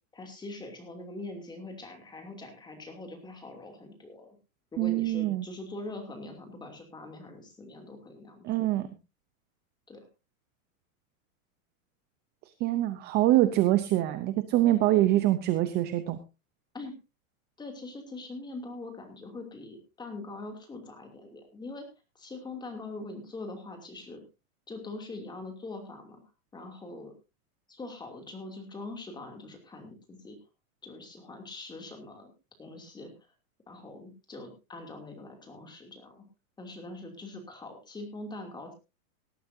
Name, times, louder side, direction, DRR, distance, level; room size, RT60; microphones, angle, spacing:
voice 1, 0.1-4.4 4.7-8.7 9.9-10.1 16.7-17.0 17.6-21.9 22.1-24.2 24.7-26.2 26.5-27.1 27.7-30.4 30.8-32.3 32.6-33.1 33.7-36.2 36.6-38.7, left 2 dB, 10° left, 4 dB, 2.8 m, -43 dB
voice 2, 4.8-5.5 8.4-8.9 12.6-16.2, right 15 dB, 25° right, 12 dB, 0.6 m, -24 dB
18.5 x 12.5 x 2.7 m, 0.28 s
supercardioid pair, 160°, 42 cm